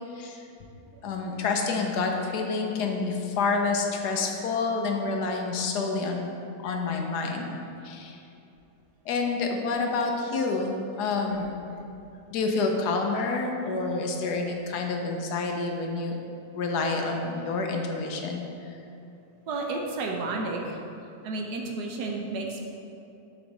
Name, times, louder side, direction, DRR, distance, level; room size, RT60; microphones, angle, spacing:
voice 1, 0.1-0.5 1.0-6.3 6.6-7.6 7.8-8.2 9.0-11.5 12.3-16.2 16.5-18.7, left 4 dB, 75° left, 2 dB, 1.3 m, -28 dB
voice 2, 19.5-20.8 21.2-22.6, right 3 dB, 75° right, 0 dB, 1.4 m, -32 dB
7.9 x 4.9 x 4.1 m, 2.8 s
omnidirectional pair, 1.8 m